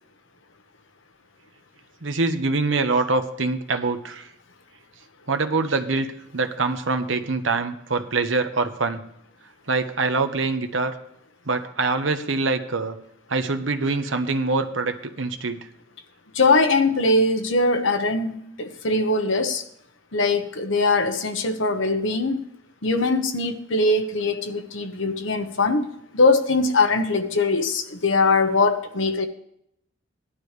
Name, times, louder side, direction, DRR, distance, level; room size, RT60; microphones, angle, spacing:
voice 1, 2.0-4.3 5.3-6.1 6.3-9.0 9.7-10.9 11.5-13.0 13.3-15.7, right 3 dB, 85° right, 7 dB, 1.1 m, -24 dB
voice 2, 16.3-19.6 20.1-22.4 22.8-25.9 26.1-29.3, left 3 dB, 85° left, 7 dB, 1.2 m, -21 dB
17.5 x 11.5 x 3.4 m, 0.74 s
head